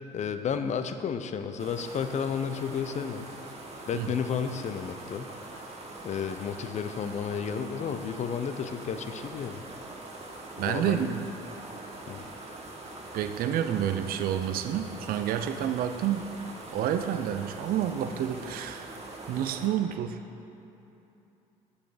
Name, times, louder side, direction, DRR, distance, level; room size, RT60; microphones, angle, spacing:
voice 1, 0.1-3.3 3.9-5.3 6.0-9.6 10.6-11.1 12.1-12.2, left 7 dB, 45° left, 9 dB, 0.6 m, -32 dB
sound 1, 1.6-19.7, right 2 dB, 40° right, 1.4 m, -43 dB
voice 2, 10.6-11.2 13.1-16.3 16.7-18.9 19.3-20.2, right 10 dB, 60° right, 8 dB, 0.5 m, -29 dB
7.0 x 7.0 x 4.9 m, 2.9 s
supercardioid pair, 65°, 17 cm